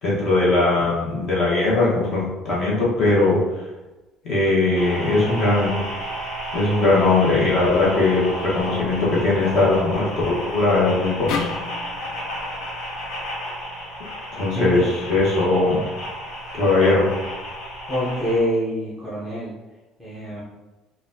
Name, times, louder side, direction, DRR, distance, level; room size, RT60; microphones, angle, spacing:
voice 1, 0.0-3.4 4.2-5.8 6.5-11.5 14.3-15.8 16.5-17.1, left 2 dB, 35° left, -7 dB, 1.1 m, -20 dB
sound 1, 4.7-18.4, equal, 80° left, 1.3 m, -32 dB
sound 2, 11.3-14.5, left 5 dB, 60° left, 0.3 m, -33 dB
voice 2, 17.9-19.5 20.0-20.4, equal, 5° left, -10 dB, 0.7 m, -25 dB
4.1 x 2.4 x 2.7 m, 1.1 s
cardioid pair, 180°, 0 cm